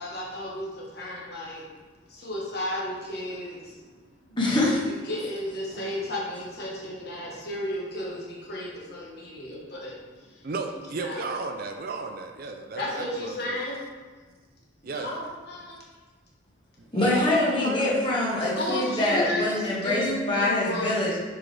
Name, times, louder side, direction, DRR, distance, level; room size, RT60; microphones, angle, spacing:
voice 1, 0.0-1.6 2.1-3.8 4.2-4.4 4.9-11.2 12.7-13.9 14.9-15.9 18.4-21.1, left 1 dB, 55° left, -4 dB, 1.3 m, -33 dB
voice 2, 4.4-4.8 14.8-15.0 16.9-21.2, left 1 dB, 25° left, -5 dB, 1.4 m, -24 dB
voice 3, 10.4-13.6 14.8-15.1 16.8-18.1, right 3 dB, 50° right, 5 dB, 0.5 m, -35 dB
6.1 x 4.7 x 3.3 m, 1.4 s
head